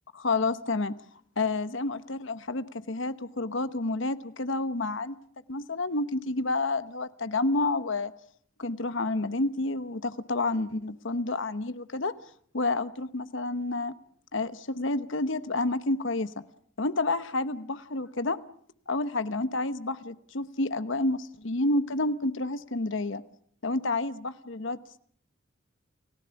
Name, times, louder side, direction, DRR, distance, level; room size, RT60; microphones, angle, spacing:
voice 1, 0.1-0.9 1.4-5.2 5.5-8.1 8.6-12.1 12.5-13.9 14.3-16.3 16.8-18.4 18.9-23.2 23.6-25.0, left 2 dB, 65° left, 13 dB, 1.0 m, -29 dB
29.5 x 17.0 x 7.1 m, 0.62 s
head